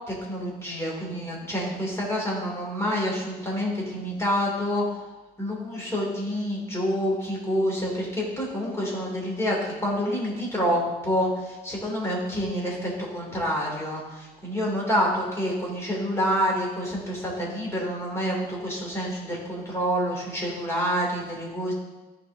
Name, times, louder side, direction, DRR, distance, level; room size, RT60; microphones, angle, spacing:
voice 1, 0.1-5.0 5.4-21.7, equal, 15° left, -3 dB, 3.0 m, -28 dB
14.0 x 4.9 x 3.6 m, 1.1 s
cardioid pair, 110°, 17 cm